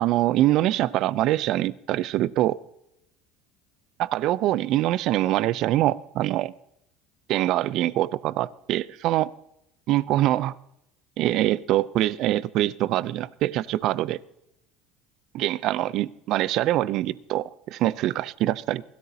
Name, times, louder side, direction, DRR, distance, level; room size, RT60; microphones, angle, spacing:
voice 1, 0.0-2.6 4.0-6.5 7.3-9.3 9.9-10.5 11.2-14.2 15.3-18.8, right 14 dB, 60° right, 20 dB, 0.5 m, -24 dB
23.5 x 17.0 x 2.8 m, 0.81 s
hypercardioid pair, 85°, 0 cm